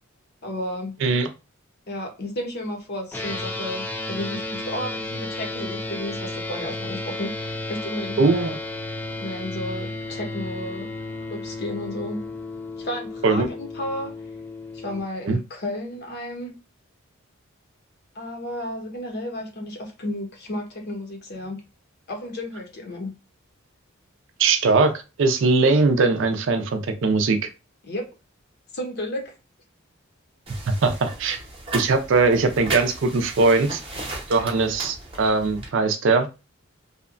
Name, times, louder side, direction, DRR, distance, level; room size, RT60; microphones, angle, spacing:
voice 1, 0.4-1.0 1.9-8.6 9.2-10.9 11.3-12.3 12.8-14.2 14.7-16.6 18.1-21.6 22.1-23.1 27.8-28.1 28.7-29.3, left 1 dB, 50° left, 0.7 m, -32 dB
sound 1, 3.1-15.0, left 2 dB, 10° left, 0.3 m, -33 dB
voice 2, 8.2-8.6 13.2-13.5 15.3-15.4 24.4-24.9 25.2-27.4 30.7-31.4 31.7-33.8 34.3-36.3, right 3 dB, 60° right, 0.4 m, -20 dB
sound 2, 30.5-35.7, right 2 dB, 25° right, 0.8 m, -35 dB
2.7 x 2.1 x 2.5 m
head